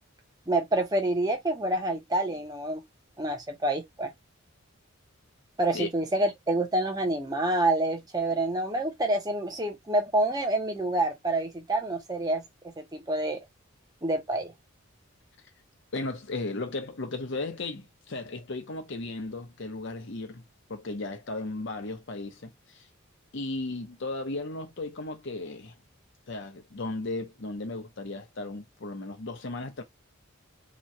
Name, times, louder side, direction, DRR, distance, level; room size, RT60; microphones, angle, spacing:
voice 1, 0.5-2.8 3.2-4.1 5.6-12.4 12.8-13.4 14.0-14.5, right 1 dB, 20° right, 0.7 m, -27 dB
voice 2, 15.9-20.4 20.7-22.8 23.3-25.7 26.3-29.8, left 2 dB, 55° left, 0.8 m, -35 dB
3.0 x 2.3 x 2.6 m
head